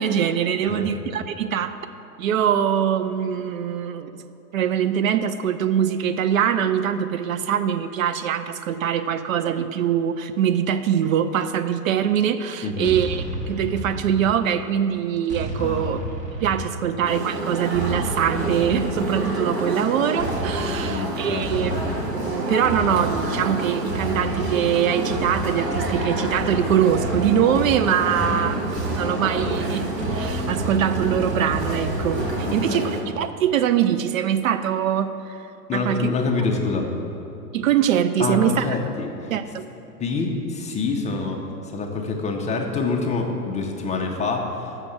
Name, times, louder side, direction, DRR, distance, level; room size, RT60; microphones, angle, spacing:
voice 1, 0.0-1.8 2.2-4.2 4.5-16.0 16.4-28.6 28.9-35.3 35.7-36.1 37.5-38.7 39.3-39.6, right 9 dB, 60° right, 11 dB, 0.5 m, -23 dB
voice 2, 12.6-13.0 15.6-16.0 16.8-17.0 20.7-21.7 28.1-28.4 32.5-32.9 35.7-36.9 38.2-39.1 40.0-44.7, left 4 dB, 15° left, 2 dB, 0.7 m, -27 dB
sound 1, 12.8-14.6 15.3-17.0 17.7-19.4 20.2-32.5, right 2 dB, 15° right, 1.1 m, -31 dB
sound 2, 17.0-33.0, right 1 dB, 90° right, 1.7 m, -28 dB
6.5 x 6.4 x 7.2 m, 2.9 s
hypercardioid pair, 105°, 47 cm